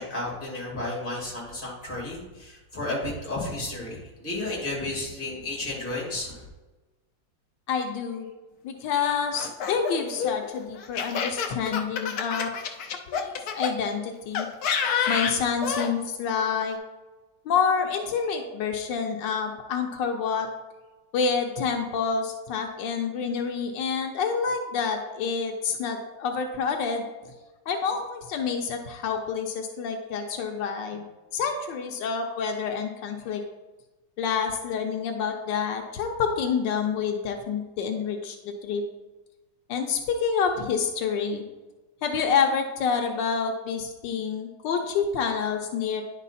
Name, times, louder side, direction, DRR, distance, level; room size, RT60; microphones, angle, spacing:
voice 1, 0.0-6.4, left 2 dB, 30° left, -4 dB, 2.5 m, -32 dB
voice 2, 7.7-8.3 8.6-12.5 13.1-14.5 15.1-16.8 17.4-20.5 21.1-27.0 27.7-31.1 31.3-33.4 34.2-38.8 39.7-41.4 42.0-46.0, left 6 dB, 85° left, 4 dB, 1.4 m, -28 dB
Laughter, 9.3-13.7 14.3-15.9, left 6 dB, 65° left, 1.1 m, -28 dB
10.0 x 4.4 x 4.1 m, 1.2 s
omnidirectional pair, 1.9 m